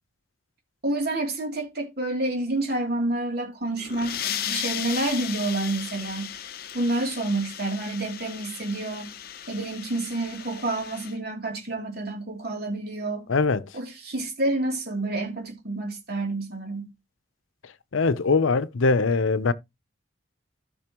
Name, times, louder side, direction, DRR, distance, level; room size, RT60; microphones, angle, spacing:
voice 1, 0.8-6.3 6.7-9.1 9.5-13.2 13.7-16.9, right 2 dB, 50° right, 3.0 m, -29 dB
sound 1, 3.7-11.1, left 10 dB, 50° left, 0.7 m, -36 dB
voice 2, 13.3-13.7 17.9-19.5, left 4 dB, 90° left, 0.7 m, -22 dB
14.5 x 5.6 x 3.0 m
head